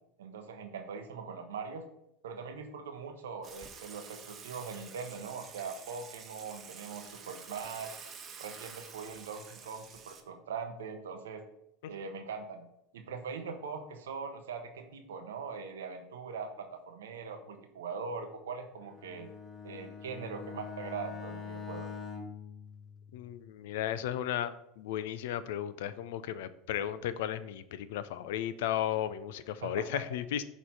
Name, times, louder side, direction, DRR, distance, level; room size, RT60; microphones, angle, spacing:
voice 1, 0.2-1.8 2.2-8.0 8.4-11.4 11.9-12.6 12.9-19.3 19.6-21.9 29.6-30.0, right 5 dB, 80° right, 6 dB, 0.7 m, -41 dB
Water / Water tap faucet / Sink (filling or washing), 3.4-10.2, right 6 dB, 35° right, 0.8 m, -49 dB
Bowed string instrument, 18.8-23.5, left 6 dB, 20° left, 0.9 m, -44 dB
voice 2, 23.1-30.4, left 11 dB, 70° left, 14 dB, 0.4 m, -35 dB
6.0 x 3.0 x 5.3 m, 0.80 s
hypercardioid pair, 80°, 0 cm